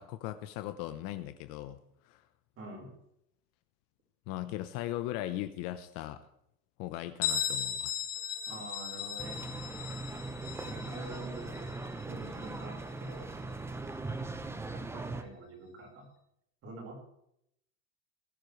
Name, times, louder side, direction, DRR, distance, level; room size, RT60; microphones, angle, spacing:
voice 1, 0.0-2.2 4.3-6.2 6.8-7.9, left 14 dB, 45° left, 10 dB, 0.9 m, -38 dB
voice 2, 2.6-2.9 8.5-9.4 10.6-11.8 12.1-13.3 14.7-16.1 16.6-17.0, right 2 dB, 30° right, 1 dB, 4.7 m, -46 dB
Bell, 7.2-12.7, left 9 dB, 85° left, 2.4 m, -37 dB
sound 1, 9.2-15.2, right 3 dB, 5° right, 0.6 m, -40 dB
21.0 x 9.9 x 3.2 m, 0.76 s
supercardioid pair, 135°, 46 cm